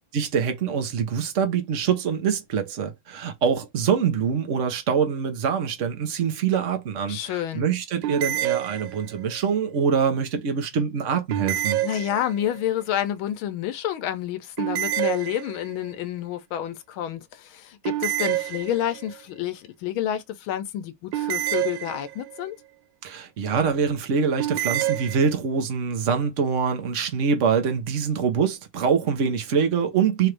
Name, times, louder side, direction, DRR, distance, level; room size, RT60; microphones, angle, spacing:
voice 1, 0.1-11.8 23.0-30.3, right 6 dB, 45° right, 1.1 m, -24 dB
voice 2, 7.1-7.6 11.8-22.6, left 11 dB, 90° left, 1.6 m, -29 dB
sound 1, 8.0-9.3 11.3-12.6 14.6-15.9 17.8-19.1 21.1-22.4 24.4-25.3, right 14 dB, 75° right, 1.2 m, -28 dB
4.8 x 2.5 x 3.3 m
omnidirectional pair, 2.2 m